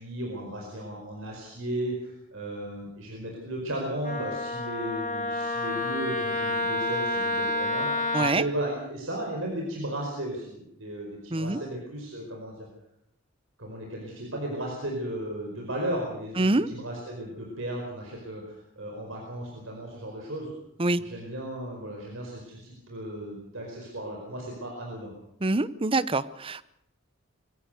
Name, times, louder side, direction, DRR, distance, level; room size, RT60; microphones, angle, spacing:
voice 1, 0.0-12.7 13.6-20.5 21.0-25.1, right 1 dB, 80° right, 0 dB, 5.0 m, -35 dB
Wind instrument woodwind instrument, 4.0-8.3, left 2 dB, 40° left, 2.5 m, -29 dB
voice 2, 11.3-11.6 16.4-16.7 20.8-21.0 25.4-26.7, right 2 dB, 25° right, 17 dB, 0.8 m, -25 dB
23.0 x 17.5 x 6.8 m, 0.75 s
head